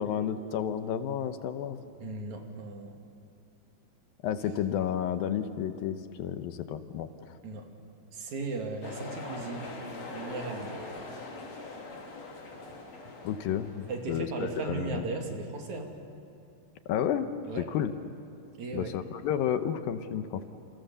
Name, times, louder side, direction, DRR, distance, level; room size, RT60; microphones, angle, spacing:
voice 1, 0.0-1.8 4.2-7.4 13.2-15.0 16.9-17.3 17.6-17.9 18.7-20.5, left 9 dB, 75° left, 9 dB, 2.6 m, -31 dB
voice 2, 2.0-3.0 7.4-7.7 8.1-9.7 10.1-10.9 13.9-15.9 17.5-17.7 18.6-18.9, right 3 dB, 50° right, 3 dB, 3.5 m, -36 dB
sound 1, 8.8-14.1, left 3 dB, 45° left, 3.9 m, -42 dB
28.5 x 28.5 x 7.0 m, 2.5 s
omnidirectional pair, 4.5 m